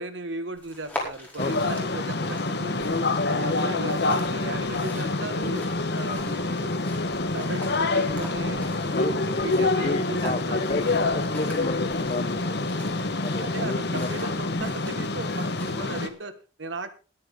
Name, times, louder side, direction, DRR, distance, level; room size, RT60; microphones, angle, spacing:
voice 1, 0.0-3.0 3.3-5.7 5.9-6.8 7.2-10.8 13.3-16.9, right 2 dB, 75° right, 10 dB, 1.8 m, -36 dB
sound 1, 0.5-16.1, left 1 dB, 10° left, 5.0 m, -44 dB
sound 2, 1.4-16.1, left 2 dB, 60° left, 1.4 m, -27 dB
voice 2, 8.9-14.2, left 2 dB, 35° left, 15 dB, 0.8 m, -33 dB
20.5 x 9.1 x 3.8 m, 0.34 s
head